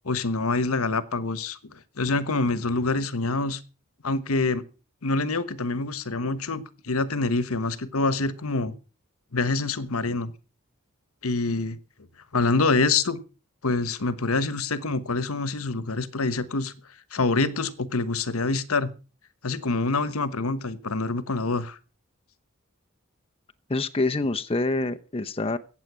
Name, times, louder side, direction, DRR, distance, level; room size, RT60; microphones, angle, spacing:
voice 1, 0.0-3.6 4.0-4.6 5.0-8.8 9.3-10.3 11.2-11.8 12.3-13.2 13.6-16.7 17.1-18.9 19.4-21.8, left 3 dB, 80° left, 15 dB, 1.2 m, -26 dB
voice 2, 23.7-25.6, left 2 dB, 25° left, 7 dB, 0.8 m, -26 dB
15.0 x 9.0 x 6.2 m, 0.36 s
head